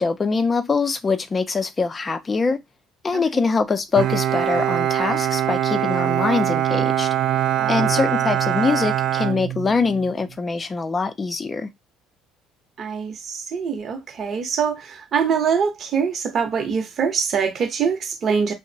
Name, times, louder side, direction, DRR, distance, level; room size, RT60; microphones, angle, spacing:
voice 1, 0.0-2.6 3.0-7.1 7.7-11.7, left 4 dB, 30° left, 0.5 m, -23 dB
voice 2, 3.1-3.5 7.6-7.9 12.8-18.5, right 6 dB, 50° right, 0.8 m, -24 dB
Bowed string instrument, 4.0-10.1, right 11 dB, 65° right, 0.3 m, -22 dB
2.8 x 2.0 x 2.7 m
supercardioid pair, 90°, 0 cm